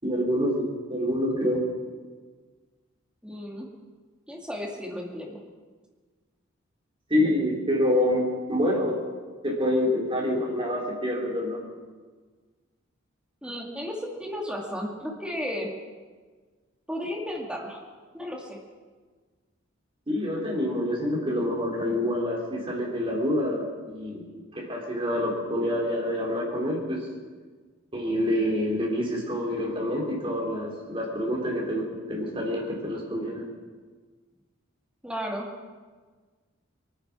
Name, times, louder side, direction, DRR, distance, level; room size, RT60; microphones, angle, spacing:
voice 1, 0.0-1.6 7.1-9.0 9.4-11.6 20.1-24.2 24.5-27.1 27.9-33.5, left 1 dB, 25° right, -3 dB, 3.9 m, -27 dB
voice 2, 3.2-3.7 4.3-5.4 13.4-15.7 16.9-17.8 18.1-18.6 35.0-35.5, equal, 5° right, -1 dB, 2.3 m, -34 dB
23.0 x 9.7 x 6.2 m, 1.4 s
head